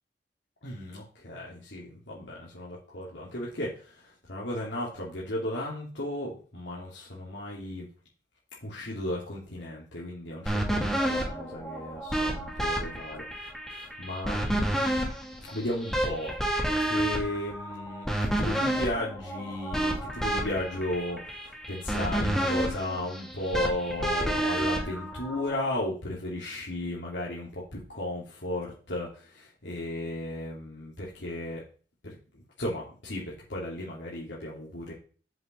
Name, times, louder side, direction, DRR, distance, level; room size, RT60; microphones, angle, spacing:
voice 1, 0.6-7.9 8.6-14.7 15.5-16.3 16.8-31.6 32.0-34.9, left 1 dB, 90° left, -5 dB, 2.9 m, -35 dB
sound 1, 10.5-25.7, right 1 dB, 5° left, 2.2 m, -30 dB
7.7 x 5.4 x 7.2 m, 0.40 s
head